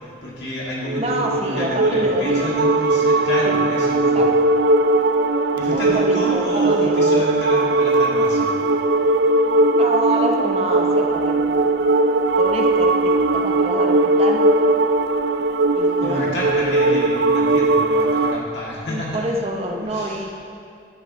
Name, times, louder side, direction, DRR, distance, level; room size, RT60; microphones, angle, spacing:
voice 1, 0.2-4.3 5.6-8.5 9.6-9.7 16.0-19.2 19.9-20.3, left 1 dB, 65° left, -6 dB, 2.3 m, -30 dB
sound 1, 0.8-18.4, right 2 dB, 60° right, 0.4 m, -19 dB
voice 2, 1.0-2.5 3.4-3.6 4.1-4.3 5.7-7.1 9.7-11.5 12.4-14.4 15.7-16.5 18.9-20.3, right 1 dB, 30° right, 1 dB, 0.8 m, -27 dB
9.9 x 9.5 x 3.0 m, 2.4 s
head